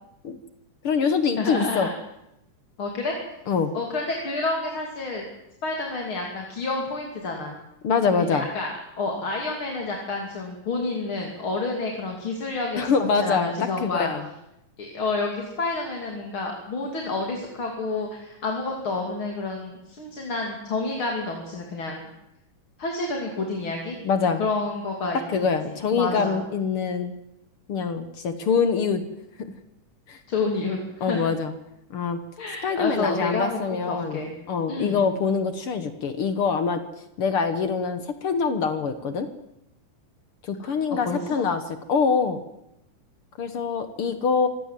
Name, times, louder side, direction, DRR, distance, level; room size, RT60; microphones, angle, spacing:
voice 1, 0.8-1.9 3.5-3.7 7.8-8.5 12.7-14.2 24.0-24.5 25.3-27.1 27.7-29.0 29.4-29.5 30.1-30.2 31.0-31.5 31.9-32.2 32.6-34.2 34.5-36.8 37.2-39.3 40.4-42.4 43.4-44.5, left 5 dB, 55° left, 10 dB, 1.6 m, -24 dB
voice 2, 1.4-1.9 2.8-3.3 3.7-5.2 5.6-7.6 8.3-12.8 13.2-14.1 14.8-22.0 22.8-24.0 24.4-25.5 26.0-26.4 30.3-31.2 32.4-34.3 34.7-35.0 40.6-40.7 41.0-41.4, left 3 dB, 40° left, 1 dB, 3.3 m, -29 dB
25.0 x 17.0 x 7.5 m, 0.86 s
omnidirectional pair, 3.7 m